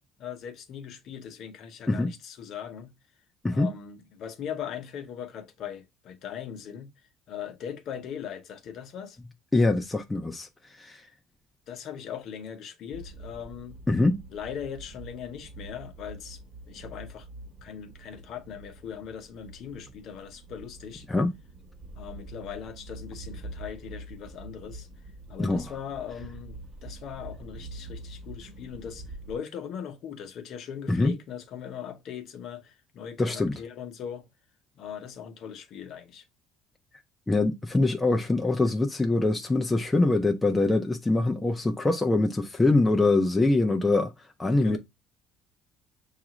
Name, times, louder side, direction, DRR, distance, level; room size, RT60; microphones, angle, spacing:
voice 1, 0.0-2.9 3.5-6.9 7.3-9.2 11.7-13.8 14.3-16.4 16.7-17.3 17.6-21.1 21.9-24.9 25.3-34.3 34.7-36.2 44.6-44.8, left 8 dB, 50° left, 0.8 m, -40 dB
voice 2, 9.5-10.5 10.8-11.0 13.9-14.2 21.1-21.4 25.4-25.6 30.9-31.1 33.2-33.6 37.3-44.1 44.4-44.8, left 2 dB, 10° left, 0.4 m, -24 dB
sound 1, 12.9-29.4, right 2 dB, 25° right, 0.9 m, -45 dB
7.0 x 2.4 x 2.9 m
cardioid pair, 155°, 0 cm